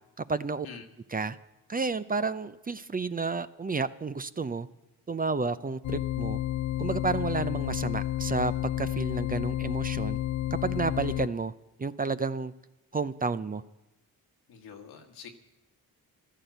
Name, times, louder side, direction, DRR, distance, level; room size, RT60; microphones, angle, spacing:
voice 1, 0.2-0.7 1.1-1.4 1.7-4.7 5.1-6.4 6.8-8.5 8.8-10.2 10.6-11.5 11.8-12.5 12.9-13.6, right 4 dB, 25° right, 13 dB, 0.5 m, -31 dB
sound 1, 5.8-11.3, left 13 dB, 50° left, 0.4 m, -31 dB
voice 2, 14.5-15.3, left 6 dB, 80° left, 4 dB, 1.6 m, -45 dB
12.5 x 11.5 x 8.0 m, 0.99 s
cardioid pair, 65°, 37 cm